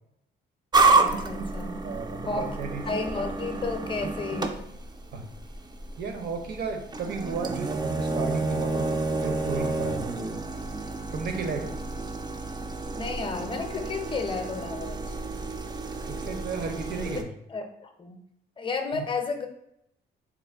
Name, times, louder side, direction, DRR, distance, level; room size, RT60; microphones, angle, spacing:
sound 1, 0.7-17.2, right 3 dB, 20° right, 0.3 m, -29 dB
voice 1, 1.0-1.9 2.2-2.6 2.9-4.7 13.0-15.1 17.1-17.2 17.5-18.2 18.6-19.5, left 4 dB, 25° left, 5 dB, 0.6 m, -32 dB
voice 2, 1.8-2.8 5.1-5.2 6.0-8.9 9.2-10.1 11.1-11.7 16.0-17.3 18.9-19.0, right 5 dB, 55° right, 5 dB, 0.7 m, -34 dB
3.4 x 2.1 x 3.4 m, 0.77 s
cardioid pair, 90°, 20 cm